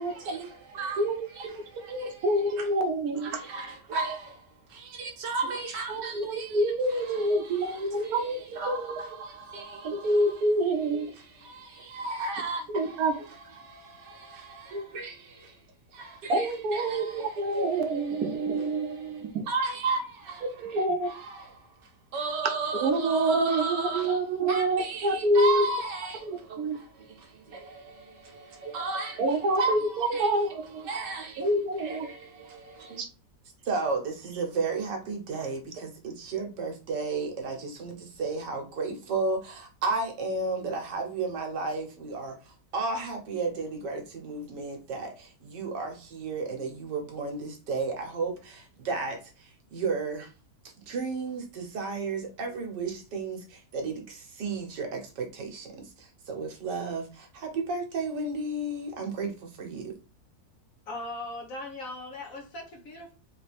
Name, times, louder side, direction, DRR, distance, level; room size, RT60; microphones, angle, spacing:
voice 1, 0.0-2.3 2.6-2.7 3.2-10.5 11.1-15.6 15.9-18.2 18.6-24.2 24.5-30.6 30.8-31.5 31.8-33.0 33.6-50.3 50.9-60.0, right 3 dB, 85° right, 1.7 m, -34 dB
voice 2, 1.0-3.4 4.8-4.9 5.9-9.0 9.8-11.1 11.8-11.9 12.7-13.1 14.7-14.8 16.3-19.5 20.6-21.1 22.7-25.6 26.2-26.8 29.2-30.9 31.4-32.1 33.0-33.1, right 1 dB, 70° right, 1.1 m, -27 dB
voice 3, 60.9-63.1, left 2 dB, 55° left, 1.4 m, -39 dB
4.1 x 3.3 x 3.3 m
omnidirectional pair, 1.8 m